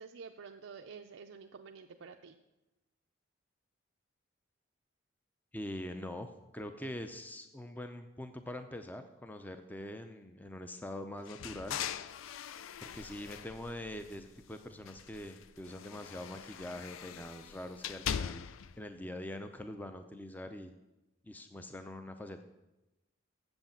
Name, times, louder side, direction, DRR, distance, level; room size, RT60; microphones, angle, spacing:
voice 1, 0.0-2.4, right 5 dB, 80° right, 3 dB, 0.5 m, -49 dB
voice 2, 5.5-6.3 6.5-11.8 12.8-18.5 18.8-20.7 21.2-22.4, left 1 dB, 10° left, 7 dB, 0.4 m, -43 dB
sound 1, 11.3-14.4 14.8-18.8, left 8 dB, 80° left, 0.4 m, -42 dB
8.0 x 7.6 x 7.2 m, 1.0 s
head